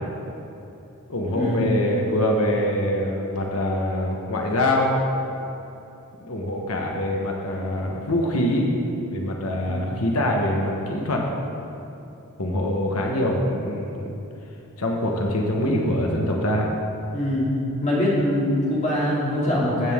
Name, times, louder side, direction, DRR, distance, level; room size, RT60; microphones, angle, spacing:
voice 1, 1.1-5.0 6.2-8.7 9.1-11.3 12.4-14.1 14.8-16.7, left 1 dB, 75° left, 0 dB, 1.2 m, -24 dB
voice 2, 17.1-17.5 17.8-19.9, left 1 dB, 30° left, -6 dB, 2.6 m, -23 dB
14.5 x 8.4 x 3.7 m, 2.8 s
head